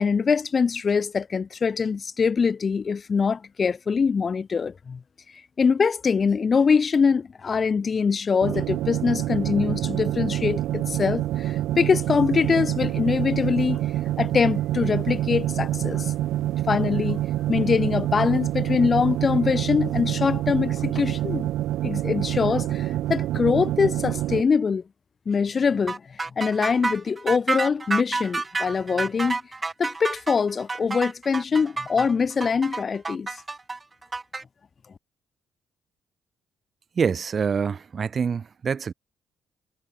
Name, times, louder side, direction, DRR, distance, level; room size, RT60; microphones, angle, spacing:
voice 1, 0.0-5.0 5.6-13.9 14.2-16.1 16.7-17.2 17.5-21.5 21.8-24.8 25.3-29.4 29.8-33.3, left 5 dB, 40° left, 0.3 m, -23 dB
sound 1, 8.4-24.4, right 14 dB, 85° right, 0.4 m, -26 dB
sound 2, 25.9-34.4, right 3 dB, 25° right, 0.5 m, -29 dB
voice 2, 37.0-38.9, right 6 dB, 45° right, 1.2 m, -25 dB
cardioid pair, 90°, 0 cm